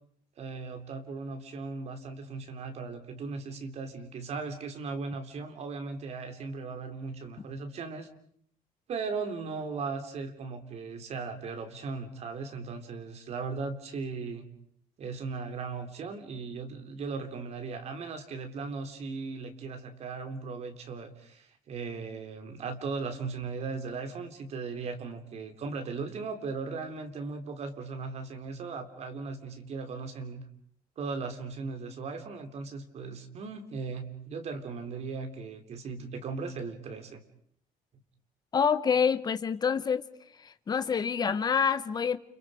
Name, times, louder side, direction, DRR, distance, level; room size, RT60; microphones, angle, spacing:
voice 1, 0.4-8.1 8.9-14.5 15.0-30.4 31.0-37.2, right 4 dB, 45° right, 3.3 m, -37 dB
voice 2, 38.5-40.0 40.4-42.2, left 6 dB, 25° left, 1.1 m, -27 dB
30.0 x 29.5 x 5.0 m
cardioid pair, 175°, 15 cm